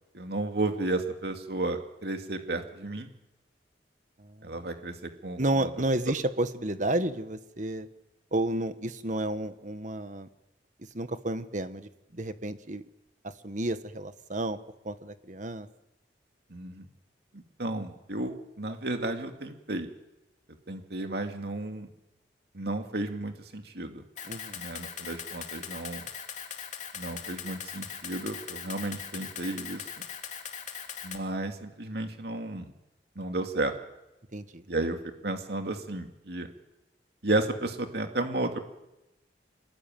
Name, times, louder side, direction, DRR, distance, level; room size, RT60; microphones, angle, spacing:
voice 1, 0.1-3.1 4.4-5.7 6.1-6.2 16.5-16.9 17.3-19.9 20.7-21.9 22.5-24.0 24.5-26.1 26.9-29.9 31.0-32.7 33.2-33.7 34.7-35.0 35.2-36.5 37.2-38.6, right 2 dB, 65° right, 5 dB, 2.4 m, -33 dB
voice 2, 4.2-4.5 5.4-7.9 8.3-10.3 10.9-12.8 13.4-14.6 14.8-15.7 24.3-24.6 34.3-34.6, right 1 dB, 45° right, 11 dB, 1.4 m, -31 dB
Camera, 24.2-31.2, left 8 dB, 45° left, 2.9 m, -40 dB
25.5 x 20.5 x 9.3 m, 0.93 s
head